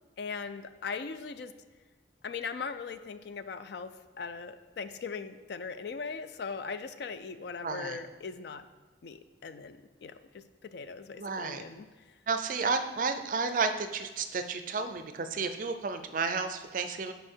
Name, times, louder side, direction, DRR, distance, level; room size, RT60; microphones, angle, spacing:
voice 1, 0.2-1.5 2.2-3.9 4.2-8.7 9.0-12.1, left 5 dB, 60° left, 11 dB, 0.4 m, -39 dB
voice 2, 7.6-8.0 11.2-11.6 12.3-17.1, right 4 dB, 45° right, 9 dB, 0.4 m, -32 dB
6.5 x 5.1 x 4.5 m, 1.4 s
head